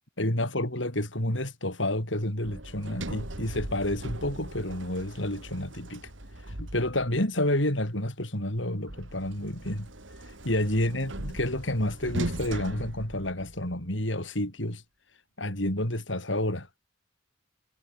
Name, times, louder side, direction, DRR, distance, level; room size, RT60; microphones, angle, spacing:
voice 1, 0.2-6.1 6.6-9.9 10.4-14.8 15.4-16.7, left 1 dB, 70° left, 7.0 m, -29 dB
Sliding door, 2.4-7.3 8.9-13.8, right 1 dB, 75° right, 3.8 m, -39 dB
head